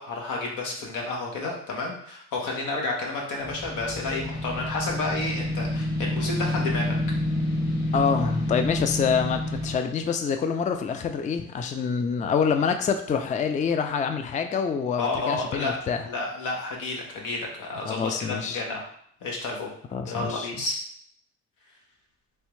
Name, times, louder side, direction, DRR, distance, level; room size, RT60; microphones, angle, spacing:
voice 1, 0.0-7.0 11.8-11.9 15.0-15.8 16.1-18.9 19.2-19.7 20.0-20.8, left 3 dB, 90° left, -1 dB, 1.1 m, -31 dB
sound 1, 3.4-9.8, left 1 dB, 40° left, 1.7 m, -28 dB
voice 2, 7.9-16.1 17.8-18.6 19.9-20.5, left 6 dB, 25° left, 7 dB, 0.3 m, -26 dB
3.5 x 3.2 x 3.1 m, 0.64 s
cardioid pair, 90°, 30 cm